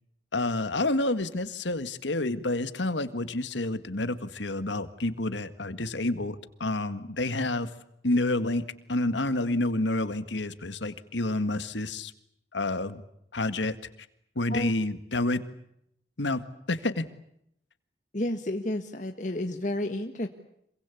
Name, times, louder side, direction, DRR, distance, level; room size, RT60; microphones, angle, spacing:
voice 1, 0.3-7.7 8.0-12.1 12.5-13.0 13.3-13.8 14.4-15.4 16.2-16.4 16.7-17.0, left 2 dB, 90° left, 12 dB, 1.9 m, -29 dB
voice 2, 18.1-20.3, left 1 dB, 45° left, 5 dB, 1.5 m, -31 dB
27.0 x 24.0 x 8.5 m, 0.76 s
head